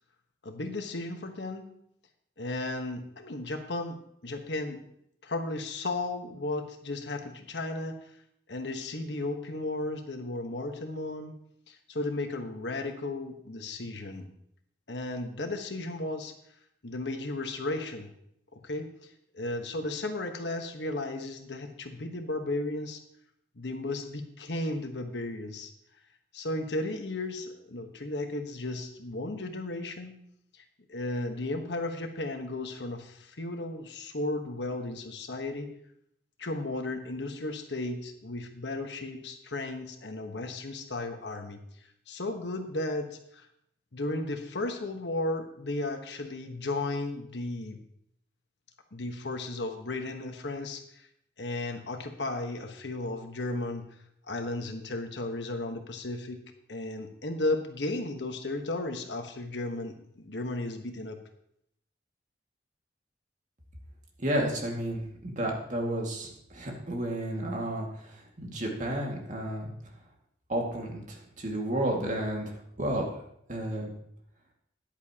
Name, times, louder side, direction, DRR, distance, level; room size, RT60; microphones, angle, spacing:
voice 1, 0.4-1.7 2.4-4.8 5.2-7.9 8.5-11.3 11.7-14.3 14.9-16.3 16.8-18.1 18.5-23.0 23.6-25.7 26.3-30.1 30.5-30.6 30.9-35.7 36.4-41.6 42.1-43.5 43.9-47.8 48.9-51.1 51.4-53.8 54.3-56.4 56.7-61.2, left 2 dB, 75° left, 5 dB, 1.3 m, -34 dB
voice 2, 64.2-69.7 70.5-73.1 73.5-73.9, right 1 dB, 45° right, 0 dB, 2.1 m, -32 dB
13.5 x 10.5 x 2.9 m, 0.72 s
head